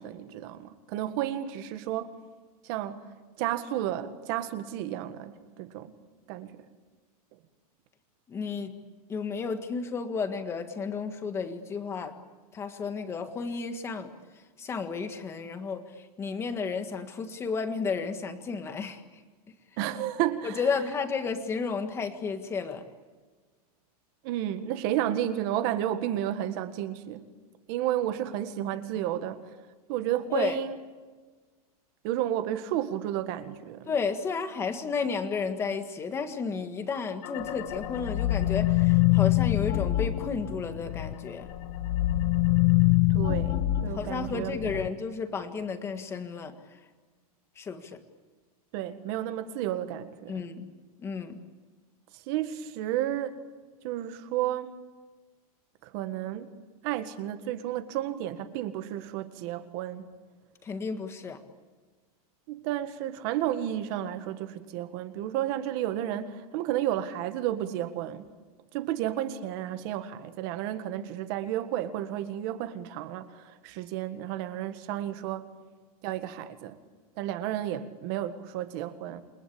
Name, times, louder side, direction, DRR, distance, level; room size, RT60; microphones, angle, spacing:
voice 1, 0.0-2.1 2.6-3.1 3.4-5.9 6.3-6.6 19.8-20.6 24.2-27.2 27.7-29.4 29.9-30.8 32.0-33.9 43.1-44.6 48.7-50.4 52.3-53.4 53.8-54.7 55.8-56.5 56.8-60.0 62.5-68.2 68.7-75.5 76.0-76.8 77.2-79.2, right 12 dB, 40° right, 1.8 m, -32 dB
voice 2, 8.3-8.8 9.1-12.2 12.5-14.1 14.6-19.0 20.4-22.8 30.3-30.6 33.9-41.5 43.9-46.8 47.6-48.0 50.3-50.7 51.0-51.4 60.6-61.4, left 5 dB, 15° left, 1.7 m, -32 dB
sound 1, 37.2-41.1 41.5-44.9, left 16 dB, 35° left, 1.3 m, -25 dB
28.5 x 22.5 x 8.7 m
supercardioid pair, 175°, 19 cm